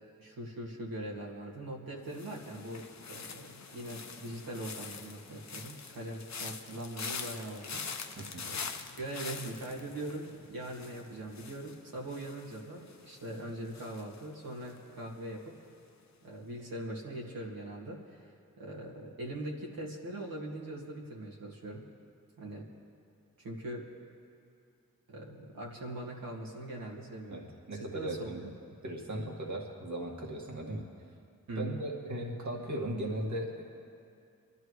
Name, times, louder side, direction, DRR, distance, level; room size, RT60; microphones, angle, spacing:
voice 1, 0.2-8.7 9.0-15.6 16.2-21.9 22.4-22.7 23.4-23.9 25.1-27.5 27.7-28.5 31.5-31.8, right 1 dB, 80° right, -4 dB, 2.1 m, -41 dB
sound 1, 2.1-15.1 15.4-15.8, left 5 dB, 50° left, 0.9 m, -44 dB
voice 2, 27.3-28.4 28.8-30.9 31.6-33.6, right 1 dB, 55° right, -1 dB, 2.1 m, -37 dB
25.0 x 12.0 x 3.2 m, 2.4 s
cardioid pair, 45°, 34 cm